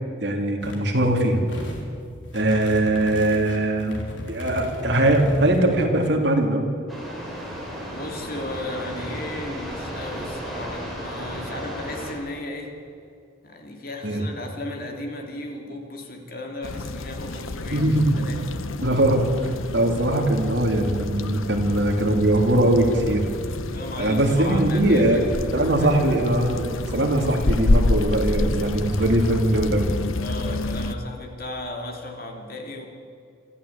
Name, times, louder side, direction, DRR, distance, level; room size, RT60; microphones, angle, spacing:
voice 1, 0.2-1.4 2.3-4.0 4.3-6.7 14.0-14.2 17.7-18.1 18.8-23.3 24.0-25.2 25.5-29.9, right 1 dB, 55° right, 2 dB, 3.0 m, -21 dB
sound 1, 0.6-0.9 1.3-1.9 2.2-5.6, equal, 65° left, 3.4 m, -36 dB
sound 2, 6.9-12.1, equal, ahead, 4.8 m, -34 dB
voice 2, 7.9-12.8 13.4-17.9 18.1-18.6 23.7-26.2 30.1-32.9, left 1 dB, 45° left, 2 dB, 2.7 m, -35 dB
sound 3, 16.6-31.0, left 2 dB, 85° left, 1.0 m, -28 dB
24.5 x 14.0 x 8.5 m, 2.4 s
head